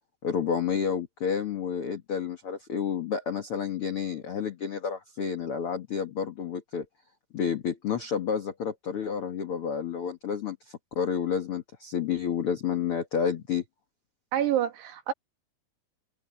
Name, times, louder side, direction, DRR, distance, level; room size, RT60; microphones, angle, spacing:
voice 1, 0.2-6.8 7.3-13.6, left 7 dB, 55° left, 1.7 m, -30 dB
voice 2, 14.3-15.1, right 11 dB, 85° right, 4.0 m, -27 dB
omnidirectional pair, 4.6 m